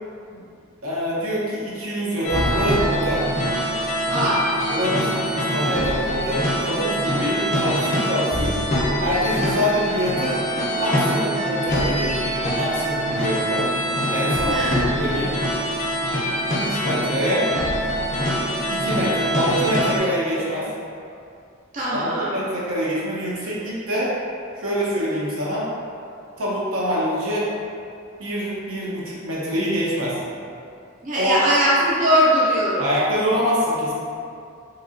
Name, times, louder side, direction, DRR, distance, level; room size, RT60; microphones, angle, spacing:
voice 1, 0.8-3.3 4.7-8.6 9.0-10.4 10.8-13.7 14.1-15.3 16.6-17.5 18.7-20.7 21.9-24.1 24.5-25.7 26.4-27.5 28.2-30.2 31.2-31.4 32.8-33.9, equal, 80° right, -7 dB, 0.8 m, -25 dB
sound 1, 2.2-20.0, equal, 35° left, 0.5 m, -24 dB
voice 2, 4.1-4.5 14.4-14.8 21.7-22.3 31.0-32.9, equal, 40° right, -7 dB, 0.5 m, -20 dB
3.0 x 2.7 x 2.5 m, 2.4 s
head